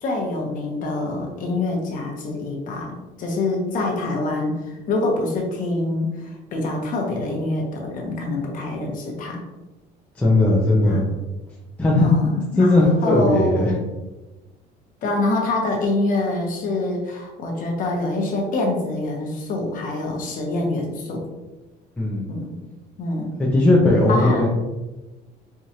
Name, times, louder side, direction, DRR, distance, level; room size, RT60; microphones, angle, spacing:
voice 1, 0.0-9.4 10.8-11.0 12.0-12.7 13.0-13.9 15.0-21.2 22.3-22.6 23.0-23.4 24.1-24.4, left 2 dB, 50° left, 1 dB, 0.9 m, -25 dB
voice 2, 10.2-11.1 11.8-12.1 12.6-13.7 22.0-22.2 23.4-24.5, left 2 dB, 10° left, -5 dB, 0.5 m, -17 dB
4.6 x 2.5 x 2.8 m, 1.1 s
cardioid pair, 150°, 18 cm